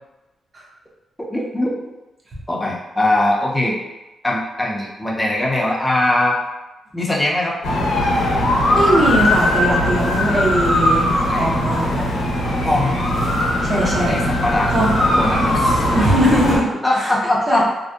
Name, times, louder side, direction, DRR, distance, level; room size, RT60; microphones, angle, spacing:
voice 1, 1.2-1.7 2.5-3.8 4.2-6.4 6.9-7.6 11.3-11.6 12.4-13.0 14.1-15.9 16.8-17.6, left 1 dB, 10° left, -3 dB, 0.5 m, -21 dB
sound 1, 7.6-16.6, left 1 dB, 90° left, 0.6 m, -19 dB
voice 2, 8.7-12.1 13.6-14.2 14.7-14.9 15.9-16.7 16.9-17.1 17.5-17.6, equal, 35° right, -3 dB, 0.6 m, -20 dB
2.5 x 2.1 x 2.3 m, 1.0 s
cardioid pair, 115°, 0 cm